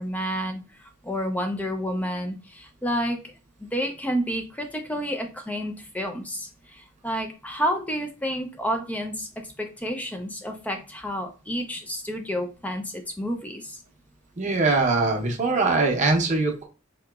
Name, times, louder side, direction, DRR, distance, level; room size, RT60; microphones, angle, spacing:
voice 1, 0.0-3.3 3.6-13.8, equal, 5° left, 4 dB, 0.3 m, -30 dB
voice 2, 14.4-16.6, right 3 dB, 35° right, 2 dB, 0.6 m, -22 dB
3.6 x 2.8 x 2.3 m, 0.33 s
head